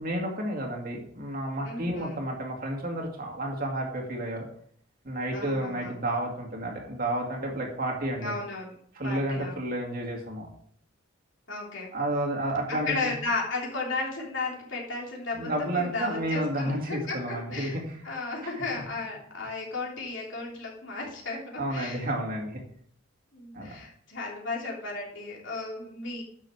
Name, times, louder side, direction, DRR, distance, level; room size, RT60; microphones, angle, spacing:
voice 1, 0.0-4.4 5.0-8.4 8.9-10.5 11.9-13.1 15.3-18.1 18.4-18.8 21.6-22.6 23.5-23.7, right 1 dB, 40° right, 0 dB, 2.2 m, -31 dB
voice 2, 1.6-2.2 5.3-5.9 8.2-8.7 9.0-9.6 11.5-11.9 12.7-17.8 18.0-22.0 23.3-26.2, left 3 dB, 55° left, -2 dB, 3.4 m, -34 dB
11.5 x 6.8 x 4.7 m, 0.62 s
head